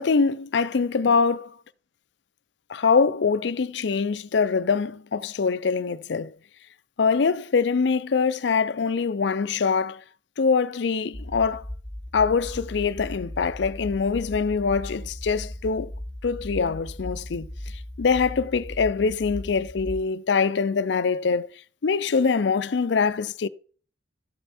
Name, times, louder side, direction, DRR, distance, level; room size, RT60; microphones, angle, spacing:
voice 1, 0.0-1.5 2.7-6.3 7.0-10.0 10.4-11.6 12.1-15.9 16.2-17.5 18.0-21.5 21.8-23.5, left 5 dB, 70° left, 0.5 m, -23 dB
sound 1, 11.1-20.0, left 1 dB, 5° left, 0.6 m, -37 dB
13.0 x 6.9 x 4.2 m
head